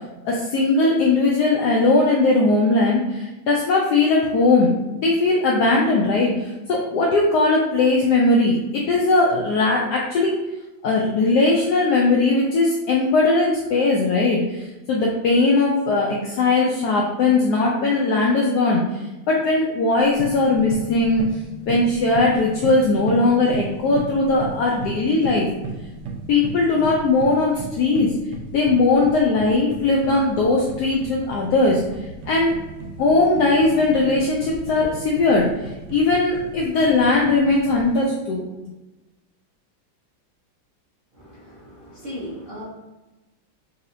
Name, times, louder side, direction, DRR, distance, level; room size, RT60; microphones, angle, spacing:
voice 1, 0.3-4.7 5.0-10.4 10.8-18.8 19.3-21.2 21.7-25.5 26.3-28.1 28.5-31.8 32.3-32.5 33.0-38.4, left 3 dB, 75° left, -3 dB, 0.9 m, -19 dB
sound 1, 20.0-38.0, right 4 dB, 80° right, 1.3 m, -36 dB
voice 2, 41.1-42.6, equal, 60° right, -9 dB, 0.5 m, -37 dB
4.0 x 2.7 x 2.6 m, 1.1 s
omnidirectional pair, 2.2 m